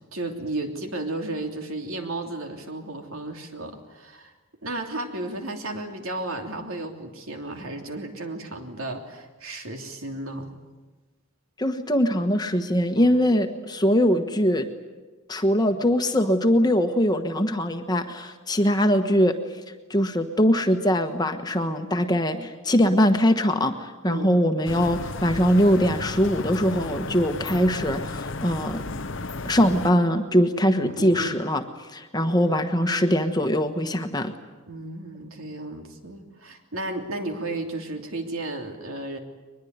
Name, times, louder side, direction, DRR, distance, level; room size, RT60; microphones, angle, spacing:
voice 1, 0.1-4.3 4.6-10.5 13.0-13.2 24.0-24.3 30.8-31.4 34.7-39.2, right 2 dB, 70° right, 4 dB, 3.2 m, -33 dB
voice 2, 11.6-14.7 15.3-19.4 19.9-28.8 29.4-31.6 31.9-34.3, equal, 20° left, 6 dB, 1.3 m, -22 dB
sound 1, 24.7-29.9, left 3 dB, 55° left, 0.8 m, -33 dB
23.0 x 21.0 x 9.6 m, 1.3 s
head